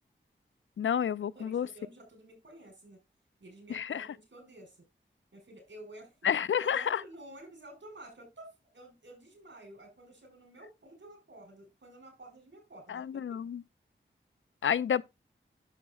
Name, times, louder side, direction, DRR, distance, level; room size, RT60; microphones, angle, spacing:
voice 1, 0.8-1.7 3.7-4.1 6.2-7.0 12.9-13.6 14.6-15.0, left 8 dB, 80° left, 0.4 m, -30 dB
voice 2, 1.3-3.0 3.4-4.8 5.3-6.2 6.6-13.0, right 1 dB, 65° right, 4.8 m, -51 dB
11.0 x 7.4 x 2.4 m
cardioid pair, 40°, 20 cm